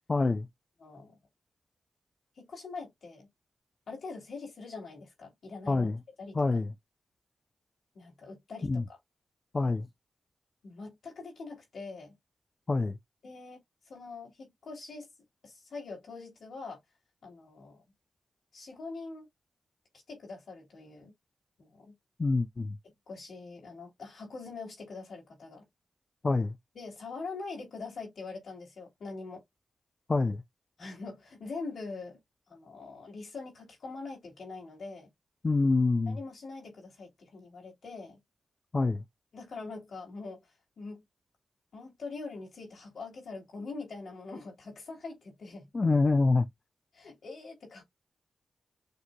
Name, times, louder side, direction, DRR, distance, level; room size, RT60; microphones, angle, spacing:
voice 1, 0.1-0.5 5.7-6.0 6.3-6.7 8.6-8.8 9.5-9.9 12.7-13.0 22.2-22.8 26.2-26.5 30.1-30.4 35.4-36.2 38.7-39.0 45.7-46.5, left 3 dB, 45° left, 0.5 m, -26 dB
voice 2, 0.8-1.2 2.4-3.3 3.9-5.9 6.2-6.4 7.9-9.0 10.6-12.1 13.2-15.1 15.4-16.8 17.2-17.8 18.5-19.3 20.1-21.1 21.6-21.9 23.1-25.7 26.7-29.4 30.8-32.2 32.5-35.1 36.0-38.2 39.3-41.0 41.7-45.7 46.9-47.8, left 3 dB, 80° left, 2.8 m, -43 dB
6.6 x 2.8 x 2.3 m
cardioid pair, 45°, 0 cm